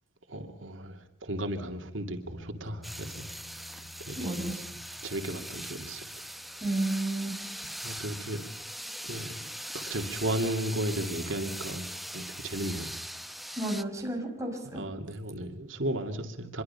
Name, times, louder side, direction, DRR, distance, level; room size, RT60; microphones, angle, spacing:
voice 1, 0.3-3.3 4.0-4.6 5.0-6.1 7.8-8.4 9.0-9.5 9.7-12.9 14.7-16.6, right 1 dB, 90° right, 2.4 m, -35 dB
Bass guitar, 2.3-8.5, left 1 dB, 35° right, 5.7 m, -53 dB
sound 1, 2.8-13.8, equal, ahead, 0.9 m, -41 dB
voice 2, 4.1-4.6 6.6-7.4 13.6-14.8, right 1 dB, 15° right, 5.6 m, -32 dB
26.0 x 23.0 x 5.7 m
head